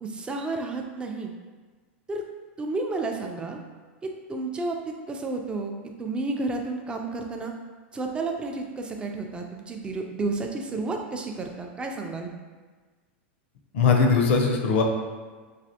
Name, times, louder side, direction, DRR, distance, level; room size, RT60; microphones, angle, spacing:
voice 1, 0.0-1.3 2.1-2.2 2.6-3.6 4.0-5.7 6.0-7.5 7.9-12.3, right 3 dB, 15° right, 3 dB, 0.3 m, -31 dB
voice 2, 13.7-14.8, left 5 dB, 70° left, 2 dB, 0.5 m, -20 dB
3.2 x 2.4 x 2.7 m, 1.4 s
supercardioid pair, 125°, 6 cm